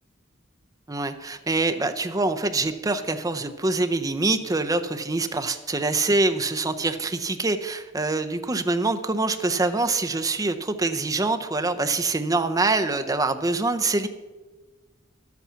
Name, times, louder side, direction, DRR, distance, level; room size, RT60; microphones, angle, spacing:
voice 1, 0.9-14.1, right 3 dB, 20° right, 9 dB, 0.6 m, -25 dB
11.0 x 8.4 x 5.7 m, 1.2 s
head